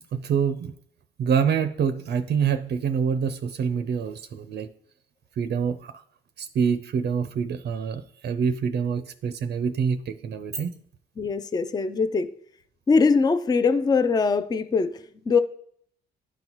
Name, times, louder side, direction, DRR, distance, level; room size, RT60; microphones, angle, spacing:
voice 1, 0.1-0.7 1.2-4.7 5.4-6.0 6.4-10.7, right 6 dB, 55° right, 0.5 m, -26 dB
voice 2, 11.2-12.3 12.9-15.4, left 4 dB, 20° left, 0.4 m, -22 dB
11.5 x 4.0 x 3.0 m
cardioid pair, 90°, 20 cm